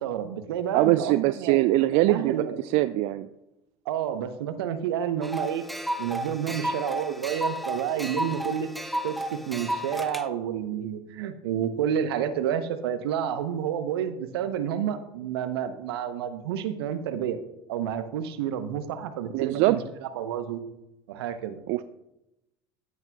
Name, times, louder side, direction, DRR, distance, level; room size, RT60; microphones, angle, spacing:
voice 1, 0.0-2.6 3.9-5.6 6.0-8.7 9.0-17.4 17.7-20.6 21.1-21.6, right 9 dB, 75° right, 10 dB, 0.8 m, -30 dB
voice 2, 0.7-2.4 2.6-3.3 19.3-19.8 21.7-21.8, right 17 dB, 55° right, 13 dB, 0.4 m, -22 dB
sound 1, 5.2-10.2, right 1 dB, ahead, 0.7 m, -32 dB
14.0 x 8.1 x 2.3 m, 0.90 s
hypercardioid pair, 70°, 13 cm